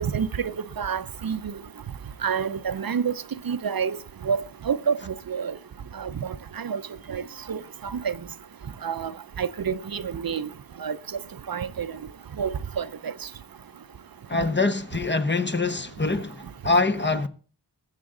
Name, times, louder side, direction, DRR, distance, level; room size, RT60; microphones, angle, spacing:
voice 1, 0.0-1.4 2.2-3.2 3.5-4.0 4.2-5.0 5.3-5.5 6.0-6.1 6.6-6.8 7.1-7.2 7.5-8.1 8.8-9.1 9.4-10.5 10.8-11.0 11.5-11.9 12.4-13.1, right 7 dB, 55° right, 0.6 m, -28 dB
voice 2, 14.3-17.3, left 3 dB, 25° left, 1.0 m, -24 dB
21.0 x 7.5 x 3.8 m
wide cardioid pair, 95°, 42 cm